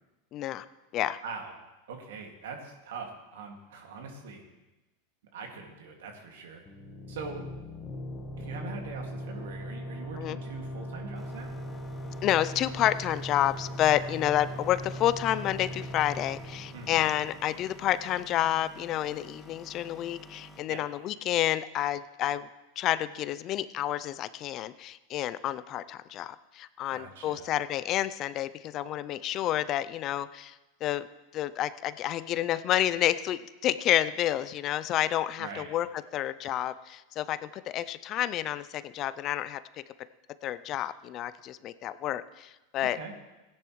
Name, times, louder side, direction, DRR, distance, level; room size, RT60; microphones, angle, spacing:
voice 1, 0.3-0.6 0.9-1.2 10.2-10.4 12.2-22.5 22.8-30.6 30.8-31.1 31.3-35.9 36.1-39.8 40.4-43.0, left 12 dB, 45° left, 14 dB, 0.5 m, -29 dB
voice 2, 1.2-1.5 1.9-4.4 5.3-6.6 7.1-7.4 8.4-11.5 16.7-17.0 20.7-20.8 26.9-27.5 35.4-35.7 42.9-43.1, right 4 dB, 80° right, 2 dB, 2.2 m, -42 dB
sound 1, 6.7-18.1, equal, 25° left, 1.3 m, -40 dB
sound 2, 11.1-20.7, equal, 5° right, 1.6 m, -51 dB
16.5 x 10.5 x 3.2 m, 1.0 s
hypercardioid pair, 105°, 0 cm